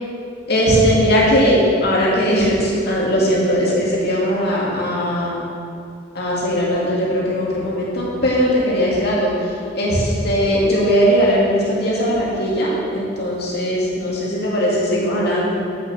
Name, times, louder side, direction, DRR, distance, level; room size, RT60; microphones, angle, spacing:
voice 1, 0.5-5.3 6.2-9.3 9.8-15.5, equal, 60° left, -5 dB, 2.5 m, -19 dB
8.1 x 6.4 x 7.4 m, 2.4 s
head